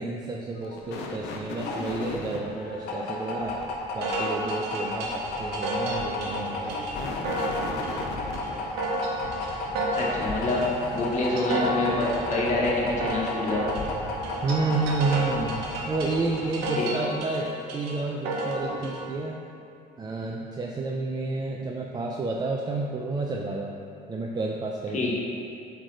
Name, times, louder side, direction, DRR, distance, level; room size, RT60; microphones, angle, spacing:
voice 1, 0.0-3.6 3.9-6.8 14.4-19.4 20.0-23.7 24.1-25.1, right 3 dB, 25° right, 0 dB, 0.4 m, -30 dB
sound 1, 0.6-3.7 6.5-8.7, left 3 dB, 85° left, 0.6 m, -37 dB
sound 2, 0.9-16.9, left 2 dB, 70° left, 1.0 m, -34 dB
sound 3, 4.0-19.0, right 1 dB, 85° right, 1.0 m, -32 dB
voice 2, 9.9-10.6 10.9-13.7 16.8-16.9 24.9-25.1, left 2 dB, 45° left, -4 dB, 1.3 m, -26 dB
7.8 x 3.3 x 3.9 m, 2.6 s
cardioid pair, 110°, 17 cm